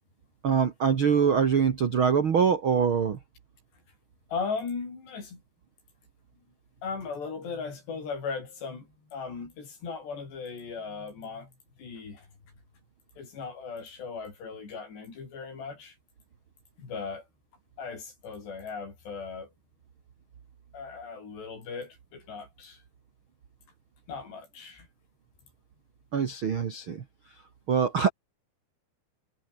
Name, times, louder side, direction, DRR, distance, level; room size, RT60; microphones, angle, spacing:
voice 1, 0.4-3.2 26.1-27.0 27.7-28.1, right 6 dB, 75° right, 1.2 m, -24 dB
voice 2, 4.3-5.4 6.8-11.5 11.8-12.3 13.2-16.0 16.8-17.3 17.8-19.5 20.7-22.8 24.1-24.9, left 5 dB, 70° left, 8.8 m, -37 dB
omnidirectional pair, 5.1 m